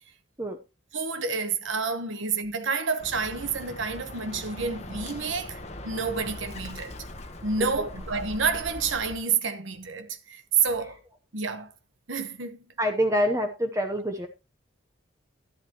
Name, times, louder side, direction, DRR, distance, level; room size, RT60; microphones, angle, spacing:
voice 1, 0.9-5.6 5.8-6.9 7.4-11.0 11.3-11.7 12.1-12.6, right 5 dB, 80° right, 1.2 m, -29 dB
Bird, 3.0-9.2, left 1 dB, 35° left, 1.1 m, -40 dB
voice 2, 12.8-14.3, equal, 15° right, 0.9 m, -26 dB
12.0 x 10.5 x 3.0 m
head